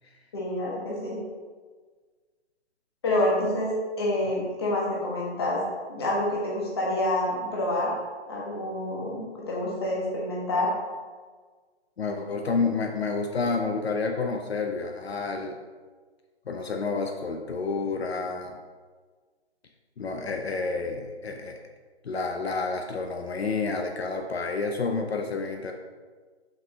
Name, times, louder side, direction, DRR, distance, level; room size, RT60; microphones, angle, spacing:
voice 1, 0.3-1.2 3.0-5.6 5.9-7.9 8.3-10.7, left 1 dB, 20° left, -4 dB, 1.1 m, -27 dB
voice 2, 12.0-15.6 16.5-18.6 20.0-21.6 22.0-25.7, left 4 dB, 65° left, 4 dB, 0.7 m, -29 dB
6.0 x 5.4 x 4.0 m, 1.4 s
hypercardioid pair, 175°, 34 cm